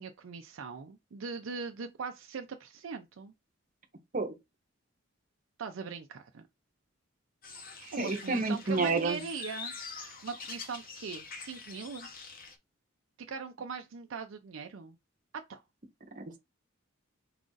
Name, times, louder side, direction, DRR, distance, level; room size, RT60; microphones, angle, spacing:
voice 1, 0.0-3.3 5.6-6.5 7.9-12.1 13.3-15.0 15.5-15.6, right 5 dB, 70° right, 0.5 m, -41 dB
sound 1, 7.4-12.5, left 5 dB, 45° left, 0.8 m, -45 dB
voice 2, 8.0-9.2 16.2-16.4, right 3 dB, 40° right, 0.8 m, -29 dB
4.8 x 2.5 x 3.8 m
head